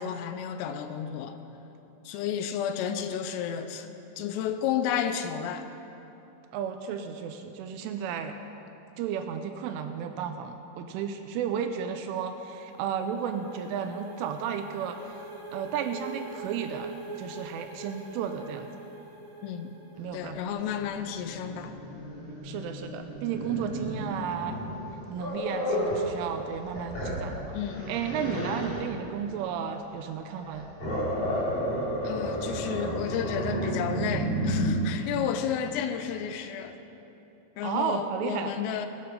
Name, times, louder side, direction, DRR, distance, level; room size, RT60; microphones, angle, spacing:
voice 1, 0.0-1.4 2.1-3.9 4.2-5.7 19.4-19.7 20.1-21.7 27.5-27.9 32.0-36.8 37.6-38.9, left 8 dB, 80° left, 8 dB, 3.2 m, -32 dB
voice 2, 6.5-8.4 9.0-15.2 15.5-18.7 20.0-20.4 22.4-24.7 25.1-27.6 27.9-30.7 37.6-38.5, right 8 dB, 80° right, 7 dB, 3.0 m, -33 dB
sound 1, 11.8-20.5, right 2 dB, 15° right, 1.1 m, -44 dB
Growling, 19.9-26.1 26.5-28.9 30.3-34.7, equal, 30° left, 2.9 m, -32 dB
20.5 x 8.9 x 5.5 m, 2.9 s
omnidirectional pair, 6.0 m